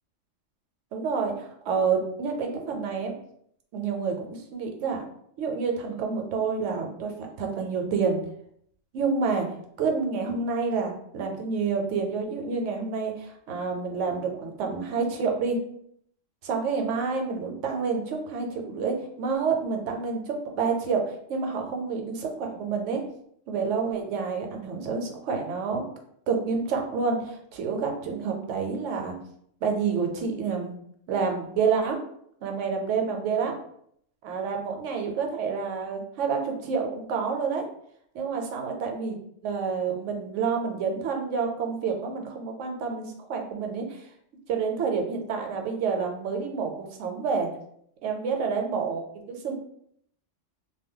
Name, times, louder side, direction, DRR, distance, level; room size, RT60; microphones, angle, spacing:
voice 1, 0.9-3.1 3.7-5.0 5.4-8.2 8.9-9.5 9.8-15.6 16.4-23.0 23.5-25.8 26.3-29.1 29.6-30.8 31.1-32.0 32.4-33.5 34.2-37.6 38.1-39.2 39.4-44.0 44.5-47.5 48.0-49.5, right 5 dB, 75° right, 3 dB, 0.9 m, -28 dB
2.2 x 2.2 x 3.6 m, 0.68 s
omnidirectional pair, 1.3 m